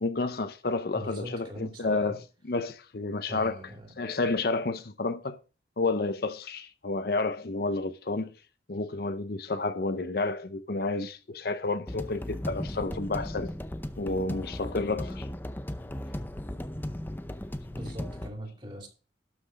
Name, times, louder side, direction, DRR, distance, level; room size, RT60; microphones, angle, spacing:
voice 1, 0.0-2.2 2.5-3.6 4.0-5.4 5.8-8.4 8.7-13.5 14.0-15.3, left 3 dB, 55° left, 0.7 m, -30 dB
voice 2, 0.9-2.2 3.3-3.9 17.7-18.9, equal, 25° right, 2.9 m, -41 dB
sound 1, 11.9-18.3, left 1 dB, 10° left, 0.6 m, -36 dB
12.0 x 6.0 x 5.1 m
head